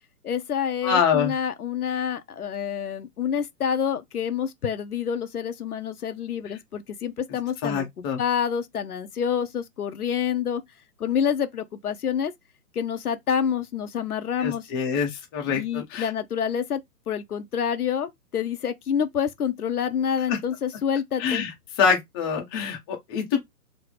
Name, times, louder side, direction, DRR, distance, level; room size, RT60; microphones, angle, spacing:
voice 1, 0.2-10.6 11.0-12.3 12.7-14.7 15.5-16.8 17.1-21.5, left 8 dB, 70° left, 0.8 m, -27 dB
voice 2, 0.8-1.3 7.6-8.2 14.4-16.1 21.2-21.5 21.8-23.4, left 6 dB, 15° left, 0.6 m, -25 dB
3.4 x 2.1 x 4.0 m
figure-of-eight pair, 125°, 46 cm